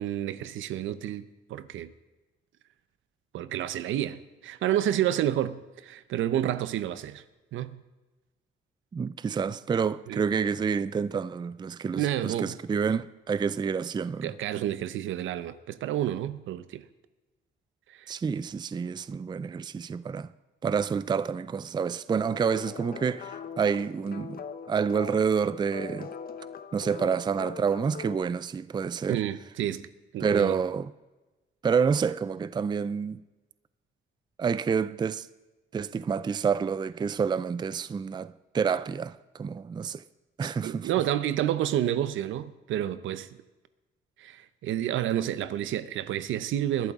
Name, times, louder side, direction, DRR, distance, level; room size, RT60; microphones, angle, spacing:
voice 1, 0.0-1.9 3.3-7.2 7.5-7.8 10.1-10.2 12.0-12.6 14.2-16.9 17.9-18.1 29.1-29.9 30.1-30.6 40.4-43.3 44.2-46.9, right 11 dB, 80° right, 0.7 m, -30 dB
voice 2, 8.9-14.3 18.1-20.3 20.6-26.1 26.7-29.2 30.2-30.9 31.6-33.2 34.4-35.3 35.7-40.0 40.4-40.9, right 6 dB, 20° right, 0.4 m, -28 dB
sound 1, 22.2-28.2, left 6 dB, 50° left, 0.8 m, -41 dB
20.5 x 11.5 x 3.6 m
cardioid pair, 90°, 20 cm